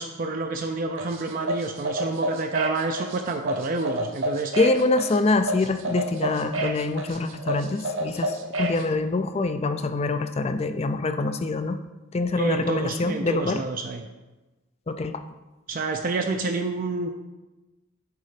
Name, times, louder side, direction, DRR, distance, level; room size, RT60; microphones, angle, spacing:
voice 1, 0.0-4.5 12.3-14.0 15.7-17.1, right 3 dB, 40° right, 4 dB, 0.4 m, -28 dB
sound 1, 1.0-8.8, right 1 dB, 60° right, 0.8 m, -29 dB
voice 2, 4.6-11.8 12.1-13.6 14.9-15.2, left 3 dB, 30° left, 10 dB, 0.3 m, -25 dB
8.2 x 3.8 x 5.0 m, 1.1 s
head